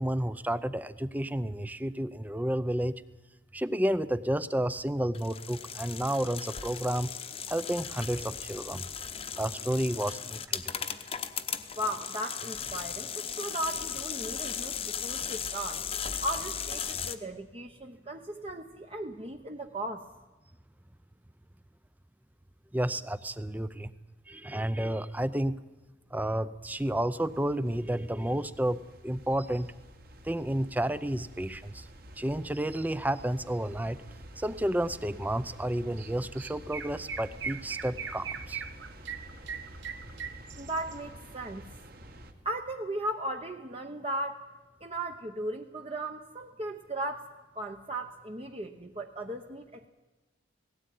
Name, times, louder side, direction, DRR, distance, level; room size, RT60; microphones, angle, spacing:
voice 1, 0.0-3.0 3.5-7.1 7.5-8.8 9.4-10.6 22.7-23.9 24.3-25.6 26.1-29.7 30.2-31.9 32.2-34.0 34.4-38.6, right 1 dB, 10° right, 15 dB, 0.6 m, -31 dB
sound 1, 5.1-17.1, left 7 dB, 30° left, 1.0 m, -37 dB
voice 2, 11.7-15.8 16.2-20.0 40.6-41.7 42.4-44.5 44.8-47.3 47.5-49.9, right 1 dB, 30° right, 3 dB, 0.9 m, -36 dB
sound 2, 26.7-42.3, right 1 dB, 50° right, 1.8 m, -49 dB
Chirp tweet, 36.0-36.1 36.4-40.9, right 6 dB, 65° right, 1.3 m, -39 dB
18.0 x 17.0 x 9.5 m, 1.2 s
head